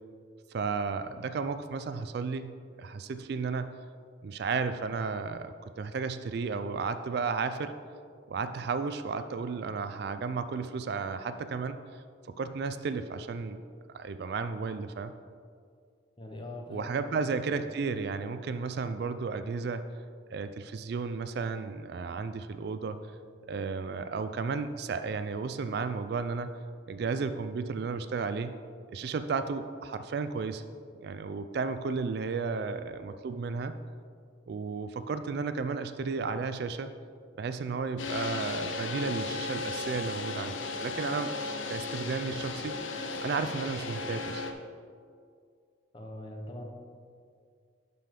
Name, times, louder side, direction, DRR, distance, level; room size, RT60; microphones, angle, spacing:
voice 1, 0.5-3.7 4.2-5.5 5.8-7.7 8.3-12.0 12.4-13.6 13.9-15.1 16.7-19.8 20.3-23.0 23.5-26.5 26.9-28.5 28.9-30.6 31.0-33.8 34.5-36.9 37.4-41.3 41.7-42.8 43.2-44.5, right 4 dB, 55° right, 10 dB, 0.3 m, -33 dB
voice 2, 16.2-17.7 32.5-32.7 45.9-46.6, left 1 dB, 25° left, 1 dB, 0.9 m, -43 dB
sound 1, 38.0-44.5, left 3 dB, 90° left, 0.7 m, -35 dB
11.0 x 5.2 x 3.7 m, 2.2 s
head